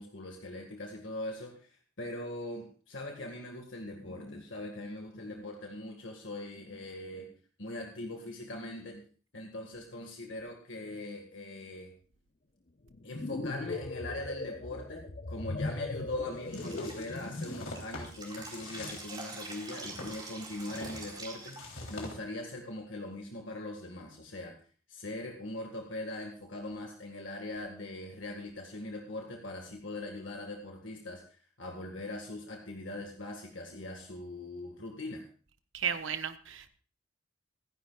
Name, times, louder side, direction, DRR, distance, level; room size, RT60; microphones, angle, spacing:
voice 1, 0.0-7.3 7.6-9.1 9.3-11.9 13.0-24.6 24.9-35.3, left 2 dB, 65° left, 2 dB, 1.9 m, -41 dB
sound 1, 12.9-17.7, left 2 dB, 40° left, 0.9 m, -38 dB
sound 2, 16.5-22.2, left 2 dB, 85° left, 3.5 m, -45 dB
Drip, 16.5-22.1, right 3 dB, 20° right, 3.9 m, -46 dB
voice 2, 35.7-36.7, right 7 dB, 80° right, 8 dB, 1.3 m, -34 dB
26.0 x 10.5 x 2.5 m, 0.41 s
head